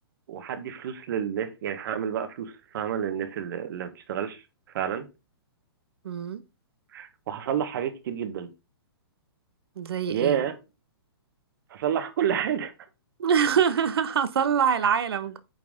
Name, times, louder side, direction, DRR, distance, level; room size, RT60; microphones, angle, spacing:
voice 1, 0.3-4.4 4.7-5.1 6.9-8.5 10.1-10.5 11.7-12.7, right 9 dB, 55° right, 1.6 m, -29 dB
voice 2, 6.0-6.4 9.8-10.4 13.2-15.4, right 7 dB, 75° right, 1.2 m, -24 dB
9.2 x 4.7 x 3.7 m
hypercardioid pair, 145°, 13 cm